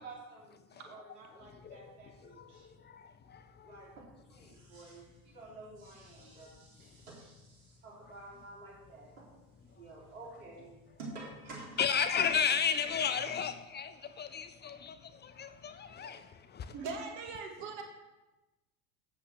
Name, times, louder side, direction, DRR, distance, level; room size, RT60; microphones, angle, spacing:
voice 1, 0.0-2.7 3.6-9.3 9.7-10.7 11.0-12.0, right 2 dB, 80° right, 3.8 m, -50 dB
voice 2, 3.3-3.8 11.8-15.0 15.2-16.2 16.5-16.7, left 7 dB, 25° left, 0.6 m, -33 dB
voice 3, 16.7-17.8, right 4 dB, 60° right, 2.1 m, -40 dB
8.4 x 7.2 x 6.4 m
hypercardioid pair, 85°, 43 cm